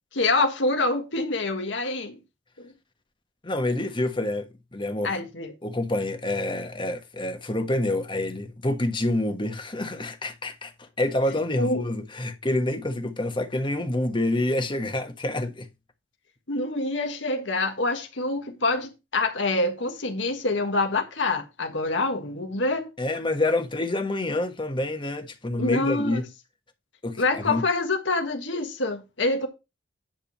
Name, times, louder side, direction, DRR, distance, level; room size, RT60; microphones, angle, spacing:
voice 1, 0.1-2.2 2.6-2.7 5.0-5.5 11.6-11.9 16.5-22.9 25.6-26.2 27.2-29.5, left 2 dB, 75° left, 1.5 m, -26 dB
voice 2, 3.4-5.2 5.6-10.7 11.0-15.7 23.0-26.3 27.0-27.6, left 1 dB, 25° left, 1.4 m, -27 dB
10.5 x 3.7 x 6.1 m
head